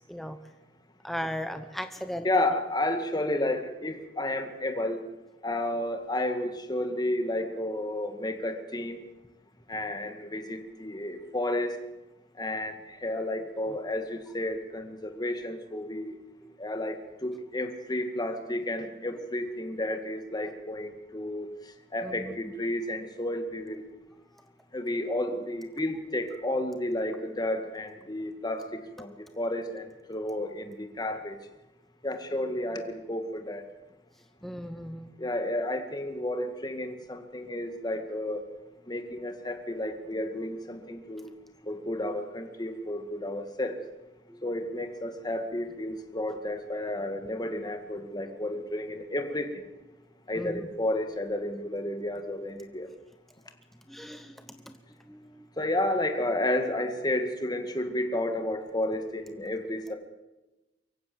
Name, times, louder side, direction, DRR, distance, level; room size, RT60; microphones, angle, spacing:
voice 1, 1.0-2.3 13.7-13.8 22.0-22.3 34.4-35.1 44.3-44.4 50.3-50.6 53.9-54.7 55.1-55.4, equal, ahead, 8 dB, 0.9 m, -37 dB
voice 2, 2.2-5.0 5.4-9.0 9.7-11.8 12.4-16.2 16.6-21.5 21.9-23.8 24.7-31.4 32.0-33.6 35.2-38.5 38.9-41.3 41.7-43.8 44.4-49.6 50.3-52.9 55.6-60.0, left 1 dB, 25° left, 6 dB, 2.0 m, -31 dB
23.5 x 15.5 x 7.8 m, 1.0 s
head